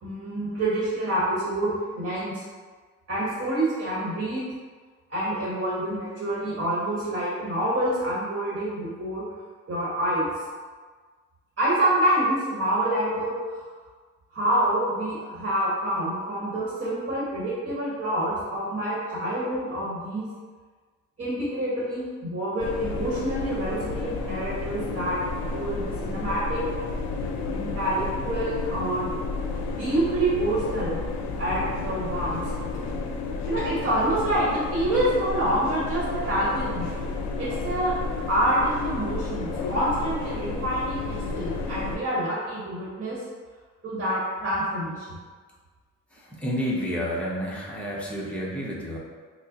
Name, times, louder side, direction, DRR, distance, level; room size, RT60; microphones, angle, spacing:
voice 1, 0.0-2.4 3.1-4.5 5.1-9.3 9.7-10.3 11.6-13.6 14.3-20.3 21.2-25.2 25.5-26.6 27.5-29.1 29.8-31.0 31.4-32.4 33.4-36.9 37.3-37.9 38.3-43.2 43.8-45.2, right 1 dB, 40° right, -6 dB, 1.1 m, -27 dB
sound 1, 22.6-42.0, left 3 dB, 65° left, 0.5 m, -31 dB
voice 2, 46.1-49.0, equal, 5° left, -5 dB, 0.8 m, -30 dB
4.6 x 2.0 x 2.8 m, 1.5 s
cardioid pair, 90°, 30 cm